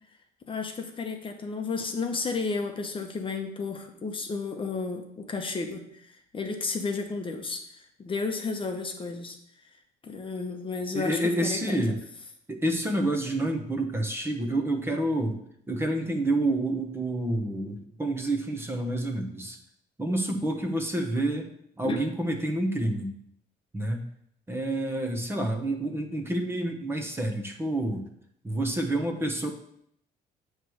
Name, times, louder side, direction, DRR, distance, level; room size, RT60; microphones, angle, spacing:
voice 1, 0.4-5.8 6.3-7.6 8.0-9.4 10.0-11.9 21.8-22.0, left 4 dB, 30° left, 4 dB, 0.9 m, -32 dB
voice 2, 10.9-11.9 12.5-15.4 15.7-19.6 20.0-21.5 21.8-23.1 23.7-24.0 24.5-28.0 28.4-29.5, right 1 dB, 15° right, 3 dB, 1.0 m, -28 dB
8.8 x 3.3 x 6.2 m, 0.70 s
cardioid pair, 110°, 17 cm